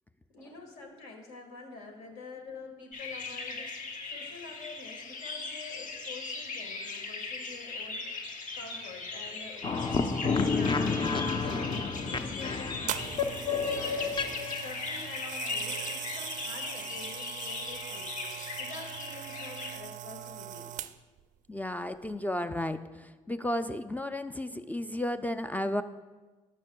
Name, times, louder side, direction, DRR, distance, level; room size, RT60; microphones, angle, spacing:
voice 1, 0.3-8.1 8.5-11.7 12.1-14.2 14.6-18.1 18.6-20.7, left 3 dB, 75° left, 3 dB, 1.6 m, -47 dB
sound 1, 2.9-19.8, left 4 dB, 55° left, 1.1 m, -39 dB
sound 2, 9.6-14.7, left 4 dB, 30° left, 0.7 m, -30 dB
sound 3, 12.9-21.2 21.9-22.2, right 12 dB, 50° right, 0.4 m, -41 dB
voice 2, 21.5-25.8, left 1 dB, 10° left, 11 dB, 0.4 m, -33 dB
12.0 x 8.1 x 2.3 m, 1.3 s
hypercardioid pair, 55°, 16 cm